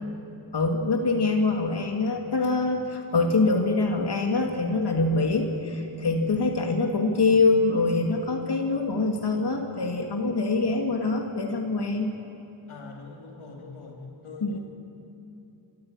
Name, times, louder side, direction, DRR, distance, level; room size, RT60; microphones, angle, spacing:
voice 1, 0.5-12.1 14.4-14.6, left 3 dB, 55° left, 2 dB, 2.1 m, -24 dB
voice 2, 12.7-14.6, left 4 dB, 85° left, 0 dB, 3.1 m, -43 dB
25.0 x 14.0 x 8.7 m, 2.8 s
cardioid pair, 45°, 49 cm